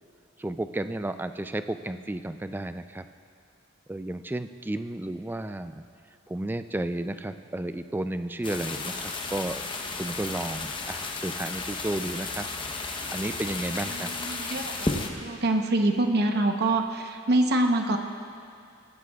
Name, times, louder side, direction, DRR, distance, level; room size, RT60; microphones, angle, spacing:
voice 1, 0.4-3.1 3.9-5.8 6.3-9.6 9.9-12.5 13.1-14.1, right 1 dB, 10° right, 10 dB, 0.3 m, -32 dB
sound 1, 8.4-15.1, left 3 dB, 25° left, 0.9 m, -33 dB
voice 2, 12.9-18.0, right 2 dB, 55° right, 4 dB, 0.9 m, -26 dB
19.0 x 15.0 x 2.3 m, 2.4 s
head